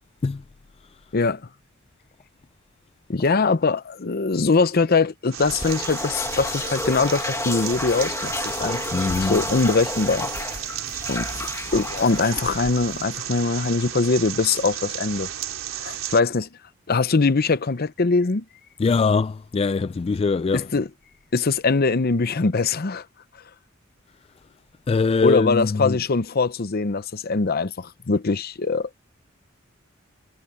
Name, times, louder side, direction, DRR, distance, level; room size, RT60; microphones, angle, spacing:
voice 1, 3.1-8.9 9.1-10.3 11.1-11.3 11.7-15.3 15.8-16.5 16.9-18.4 20.5-20.9 21.3-23.0 25.2-28.9, left 4 dB, 50° left, 0.7 m, -22 dB
sound 1, 5.3-16.2, right 10 dB, 90° right, 3.8 m, -34 dB
sound 2, 5.4-13.0, left 2 dB, 15° left, 1.4 m, -31 dB
voice 2, 8.9-9.4 18.8-20.7 24.9-26.0, left 4 dB, 30° left, 0.3 m, -22 dB
head